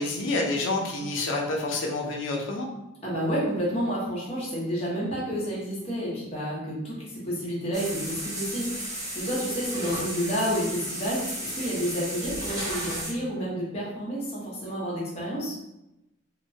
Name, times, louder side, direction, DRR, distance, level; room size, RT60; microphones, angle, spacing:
voice 1, 0.0-2.7, left 2 dB, 65° left, 0 dB, 0.5 m, -28 dB
voice 2, 3.0-15.5, equal, 30° left, -7 dB, 0.9 m, -30 dB
sound 1, 7.7-13.1, right 1 dB, 20° right, 0.6 m, -34 dB
2.9 x 2.1 x 2.7 m, 0.92 s
head